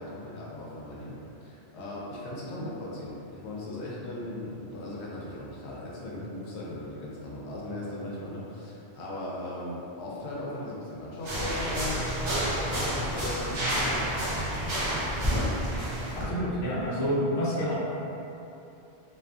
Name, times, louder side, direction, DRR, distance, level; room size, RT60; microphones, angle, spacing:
voice 1, 0.0-12.1 12.6-14.0, left 1 dB, 85° left, -6 dB, 0.8 m, -38 dB
sound 1, 11.2-16.3, equal, 40° right, 0.4 m, -29 dB
voice 2, 16.3-17.7, equal, 55° left, -7 dB, 0.6 m, -28 dB
2.5 x 2.3 x 2.3 m, 2.8 s
omnidirectional pair, 1.1 m